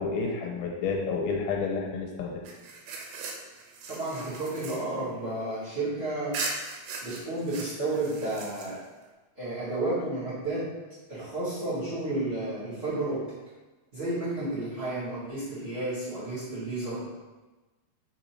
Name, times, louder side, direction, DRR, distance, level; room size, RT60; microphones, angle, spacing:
voice 1, 0.0-2.4, left 4 dB, 80° left, 1 dB, 2.7 m, -30 dB
sound 1, 2.5-5.9 6.3-9.0, right 3 dB, 90° right, 2.7 m, -39 dB
voice 2, 3.9-6.4 7.0-8.8 9.3-10.7 11.1-13.3 13.9-17.1, right 2 dB, 45° right, -11 dB, 0.8 m, -32 dB
5.6 x 3.7 x 4.5 m, 1.2 s
omnidirectional pair, 4.3 m